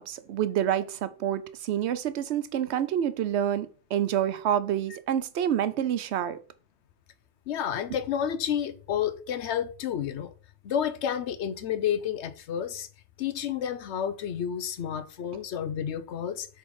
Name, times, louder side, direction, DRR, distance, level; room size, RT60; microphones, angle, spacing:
voice 1, 0.0-6.4, right 10 dB, 85° right, 0.9 m, -28 dB
voice 2, 7.5-10.3 10.6-12.9 13.2-16.5, left 9 dB, 85° left, 0.9 m, -30 dB
7.4 x 3.5 x 4.7 m
omnidirectional pair, 1.1 m